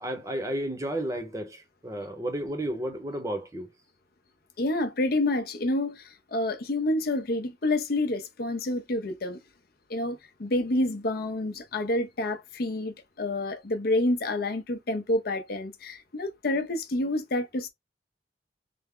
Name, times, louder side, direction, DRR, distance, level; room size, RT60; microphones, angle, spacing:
voice 1, 0.0-3.7, right 1 dB, 15° right, 0.7 m, -32 dB
voice 2, 4.6-9.4 9.9-17.7, left 1 dB, 55° left, 0.6 m, -28 dB
3.4 x 2.1 x 3.6 m
head